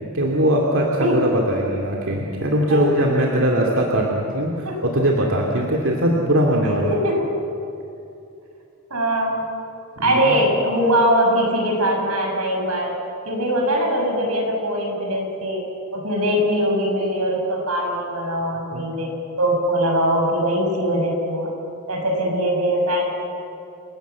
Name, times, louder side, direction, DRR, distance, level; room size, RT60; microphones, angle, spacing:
voice 1, 0.1-6.9 10.0-10.4 18.7-18.9, right 1 dB, 65° right, -1 dB, 2.6 m, -21 dB
voice 2, 8.9-9.5 10.0-12.9 13.2-15.6 15.9-19.1 19.4-21.5 21.9-23.0, equal, 85° right, 1 dB, 6.7 m, -21 dB
29.5 x 18.0 x 8.3 m, 2.6 s
head